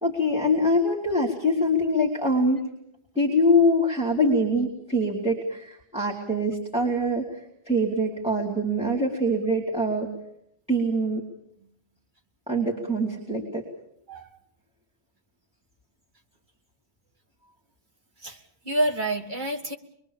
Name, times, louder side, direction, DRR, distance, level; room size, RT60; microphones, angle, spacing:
voice 1, 0.0-2.6 3.1-10.1 10.7-11.2 12.5-13.7, left 1 dB, 5° right, -2 dB, 2.7 m, -24 dB
voice 2, 18.2-19.8, right 1 dB, 50° right, 3 dB, 2.0 m, -28 dB
24.5 x 22.5 x 7.2 m, 0.75 s
omnidirectional pair, 1.1 m